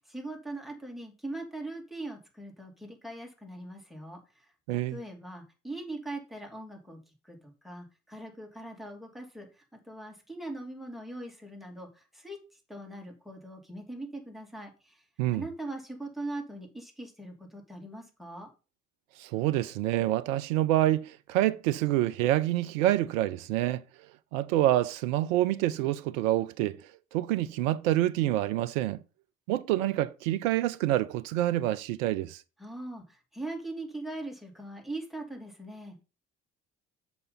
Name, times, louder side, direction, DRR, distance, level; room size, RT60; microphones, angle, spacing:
voice 1, 0.1-4.2 4.7-7.0 7.2-12.4 12.7-15.0 15.3-18.5 32.6-36.0, right 2 dB, ahead, 2.8 m, -41 dB
voice 2, 4.7-5.0 15.2-15.4 19.2-23.8 24.3-26.8 27.1-29.0 29.5-32.4, right 14 dB, 80° right, 0.6 m, -27 dB
6.7 x 5.4 x 5.3 m
hypercardioid pair, 45°, 39 cm